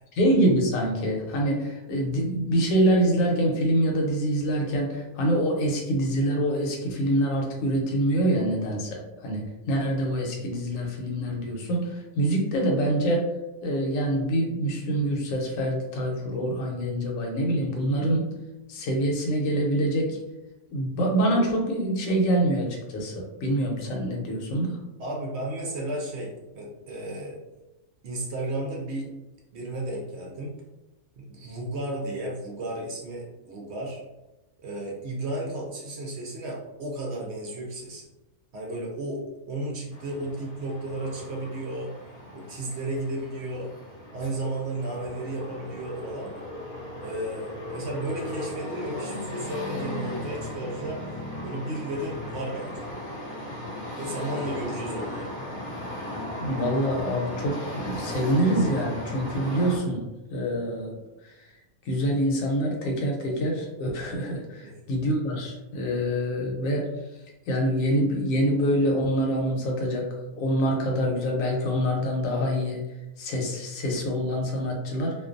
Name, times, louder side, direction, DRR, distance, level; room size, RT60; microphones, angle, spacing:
voice 1, 0.2-11.9 12.2-13.2 13.6-18.3 18.7-20.2 20.7-24.7 56.4-60.0 60.3-61.0 61.9-66.9 67.5-70.1 70.4-72.8 73.2-75.1, right 1 dB, 70° left, 0 dB, 1.0 m, -25 dB
voice 2, 25.0-27.4 28.0-29.1 29.5-30.6 31.2-34.0 34.6-38.1 38.5-41.9 42.3-43.7 44.1-46.3 47.0-51.0 51.4-52.9 53.9-55.3 64.6-64.8, right 1 dB, 65° right, -2 dB, 0.7 m, -33 dB
sound 1, 39.9-59.8, left 1 dB, 50° left, 0.7 m, -37 dB
2.5 x 2.2 x 2.5 m, 1.0 s
omnidirectional pair, 1.6 m